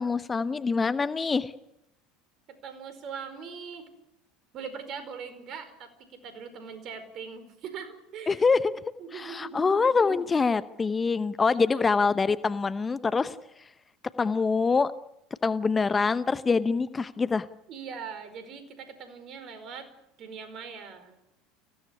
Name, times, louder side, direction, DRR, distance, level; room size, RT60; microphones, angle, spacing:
voice 1, 0.0-1.5 8.3-8.7 9.1-13.3 14.2-14.9 15.4-17.5, left 4 dB, 20° left, 14 dB, 0.9 m, -25 dB
voice 2, 2.5-3.9 4.5-8.4 9.0-9.7 11.5-11.8 17.7-19.9 20.2-21.2, right 6 dB, 45° right, 11 dB, 4.8 m, -41 dB
26.0 x 16.5 x 9.7 m, 0.87 s
hypercardioid pair, 75°, 0 cm